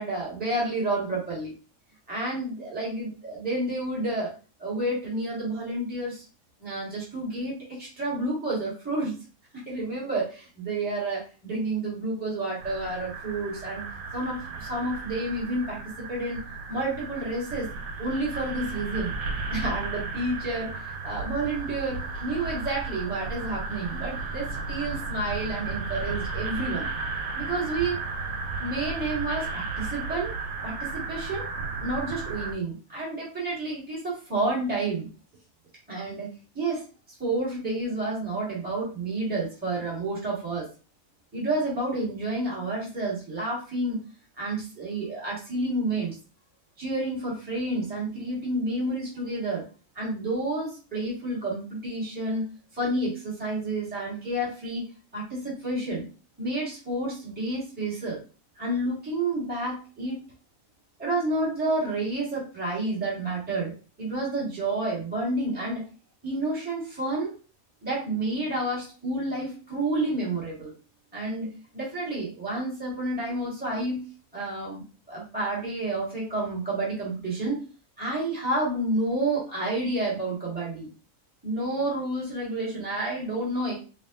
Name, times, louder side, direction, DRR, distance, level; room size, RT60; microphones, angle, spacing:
voice 1, 0.0-1.5 2.1-4.3 4.6-6.2 6.6-9.1 9.5-13.9 14.1-16.4 16.7-17.7 18.0-19.1 19.5-26.9 27.3-27.9 28.6-30.3 30.6-31.5 31.8-35.1 35.9-36.3 36.5-36.8 37.2-40.7 41.3-44.0 44.4-46.1 46.8-49.6 49.9-52.4 52.7-54.8 55.1-56.1 56.4-58.2 58.5-60.2 61.0-63.7 64.0-65.8 66.2-67.3 67.8-70.7 71.1-74.0 74.3-77.6 78.0-80.9 81.4-83.8, right 2 dB, 5° right, -6 dB, 1.8 m, -30 dB
sound 1, 12.6-32.6, right 4 dB, 85° right, 1.2 m, -34 dB
5.1 x 2.7 x 2.6 m, 0.35 s
omnidirectional pair, 1.5 m